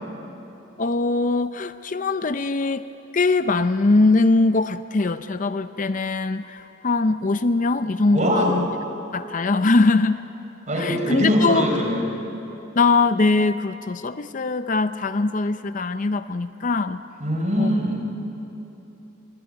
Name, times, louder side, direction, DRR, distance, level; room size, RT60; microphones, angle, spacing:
voice 1, 0.8-2.8 3.1-8.7 9.1-10.3 10.8-11.7 12.8-17.0 17.6-17.7, left 3 dB, 40° left, 11 dB, 0.5 m, -21 dB
voice 2, 8.1-8.5 10.7-12.0 17.2-18.0, equal, 35° right, 2 dB, 4.5 m, -22 dB
25.5 x 23.5 x 9.7 m, 3.0 s
head